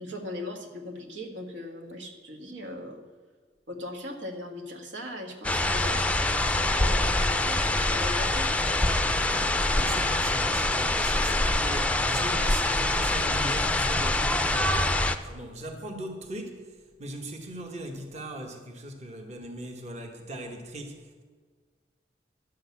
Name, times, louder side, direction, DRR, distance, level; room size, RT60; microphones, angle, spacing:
voice 1, 0.0-3.0 3.7-8.5, left 1 dB, 85° right, 3 dB, 1.6 m, -39 dB
sound 1, 5.4-15.2, left 2 dB, 5° left, 0.4 m, -25 dB
voice 2, 9.3-14.7 15.2-21.0, right 1 dB, 40° right, 3 dB, 1.2 m, -39 dB
11.5 x 6.4 x 8.3 m, 1.5 s
head